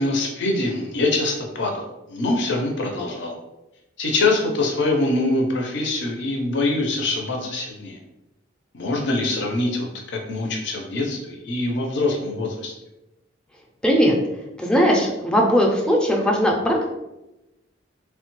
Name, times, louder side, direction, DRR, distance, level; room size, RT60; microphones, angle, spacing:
voice 1, 0.0-3.3 4.0-8.0 8.7-12.7, left 2 dB, 65° left, 1 dB, 0.5 m, -24 dB
voice 2, 13.8-14.2 14.6-16.8, equal, 5° left, -1 dB, 0.4 m, -19 dB
3.1 x 2.1 x 3.0 m, 0.96 s
head